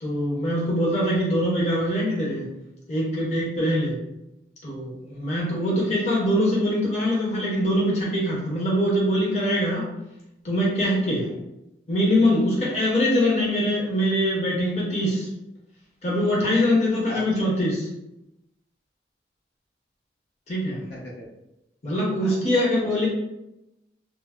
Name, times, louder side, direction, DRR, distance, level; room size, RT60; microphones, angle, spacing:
voice 1, 0.0-2.5 2.9-4.0 4.6-9.9 10.4-11.2 11.9-15.3 16.0-17.9 20.5-20.8 21.8-23.1, equal, 40° left, -5 dB, 0.6 m, -23 dB
voice 2, 11.0-11.4 17.1-17.5 20.9-21.3 22.2-23.1, left 1 dB, 75° left, -3 dB, 0.7 m, -40 dB
3.1 x 2.0 x 2.3 m, 0.90 s
head